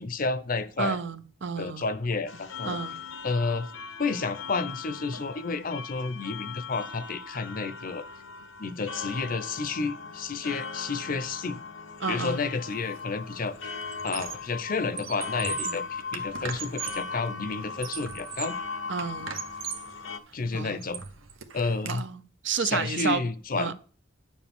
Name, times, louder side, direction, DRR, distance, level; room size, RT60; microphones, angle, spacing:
voice 1, 0.0-1.0 1.6-2.8 3.2-3.7 4.0-8.0 8.6-11.6 12.1-13.8 14.0-18.5 20.3-21.0 21.5-22.0 22.6-23.7, left 4 dB, 45° left, 0.6 m, -31 dB
voice 2, 0.8-1.8 2.6-3.0 12.0-12.5 15.6-15.8 18.9-19.4 20.5-20.8 21.8-23.2 23.6-23.7, right 5 dB, 65° right, 0.7 m, -31 dB
sound 1, 2.3-20.2, left 4 dB, 80° left, 0.9 m, -39 dB
Squeak, 12.7-13.0 13.3-14.5 14.9-17.1 17.6-18.6 19.0-19.9 20.4-22.0, right 7 dB, 90° right, 1.0 m, -39 dB
9.9 x 7.2 x 3.6 m
head